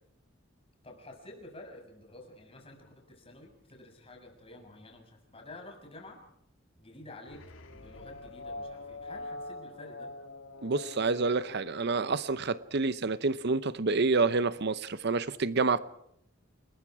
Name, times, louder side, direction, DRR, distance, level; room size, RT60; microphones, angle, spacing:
voice 1, 0.8-6.2 6.8-7.4 7.7-10.1, left 2 dB, 30° left, 6.8 m, -50 dB
sound 1, 7.2-12.8, left 2 dB, 75° left, 2.3 m, -44 dB
voice 2, 10.6-15.8, right 3 dB, 55° right, 0.8 m, -28 dB
29.5 x 21.5 x 4.8 m
head